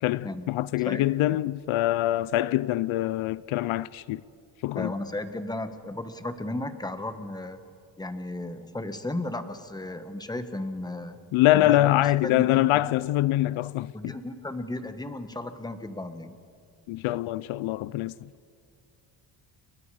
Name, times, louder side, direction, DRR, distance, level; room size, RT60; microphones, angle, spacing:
voice 1, 0.0-4.2 4.6-4.9 11.3-14.1 16.9-18.3, left 15 dB, 80° left, 0.6 m, -24 dB
voice 2, 4.8-7.6 8.0-11.2 11.5-12.7 13.9-16.4, left 2 dB, 10° left, 1.3 m, -34 dB
29.5 x 22.0 x 4.9 m
cardioid pair, 125°, 48 cm